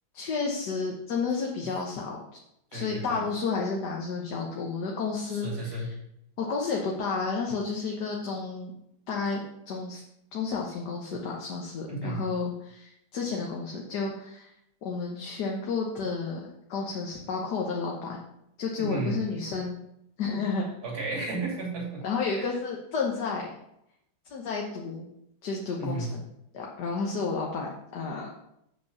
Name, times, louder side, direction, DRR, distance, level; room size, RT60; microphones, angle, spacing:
voice 1, 0.1-2.2 2.7-5.9 6.4-8.7 9.1-9.4 9.7-10.0 10.3-14.5 14.8-16.4 16.7-18.2 18.6-19.7 20.2-20.7 22.0-23.5 24.3-25.1 25.4-26.2 26.5-28.3, left 4 dB, 75° left, -1 dB, 1.7 m, -31 dB
voice 2, 2.7-3.2 5.3-5.9 11.9-12.2 18.8-19.2 20.8-22.0 22.3-22.5 25.8-26.1, right 2 dB, 65° right, -3 dB, 3.3 m, -33 dB
7.9 x 5.4 x 7.0 m, 0.79 s
omnidirectional pair, 1.8 m